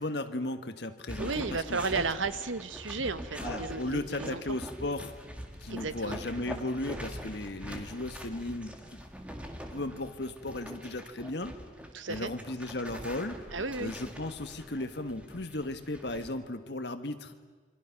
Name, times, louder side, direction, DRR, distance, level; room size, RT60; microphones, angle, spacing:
voice 1, 0.0-2.0 3.4-5.1 5.6-9.0 9.7-11.5 12.1-13.4 13.8-17.3, left 2 dB, 60° left, 8 dB, 1.5 m, -36 dB
sound 1, 1.1-16.3, equal, 5° right, 1.9 m, -43 dB
voice 2, 1.2-4.4 5.7-6.2 11.9-12.3 13.5-13.9, right 4 dB, 90° right, 12 dB, 1.1 m, -33 dB
28.5 x 24.5 x 5.9 m, 1.5 s
head